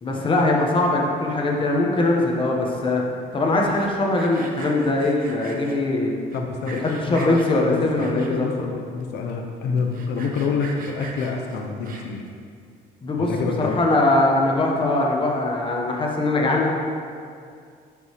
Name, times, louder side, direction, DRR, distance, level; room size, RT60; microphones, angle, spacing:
voice 1, 0.0-3.0 3.3-6.1 6.8-8.5 13.0-13.3 13.6-16.7, left 2 dB, 30° left, -1 dB, 1.3 m, -21 dB
Sawing, 3.6-5.8 6.3-7.5 8.0-8.6 9.0-9.1 9.3-9.4 9.8-12.3, right 4 dB, 55° right, 1.0 m, -40 dB
voice 2, 6.3-12.2 13.2-13.8, left 4 dB, 75° left, 2 dB, 0.8 m, -27 dB
11.5 x 5.3 x 3.2 m, 2.3 s
cardioid pair, 110°, 17 cm